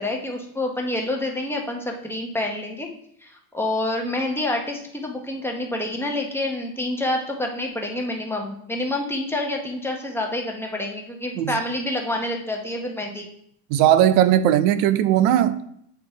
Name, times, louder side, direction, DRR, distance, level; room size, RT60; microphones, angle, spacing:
voice 1, 0.0-2.9 3.2-13.3, left 1 dB, 5° left, 0.8 m, -27 dB
voice 2, 13.7-15.6, right 11 dB, 80° right, 0.6 m, -18 dB
8.4 x 4.6 x 3.9 m
cardioid pair, 150°, 48 cm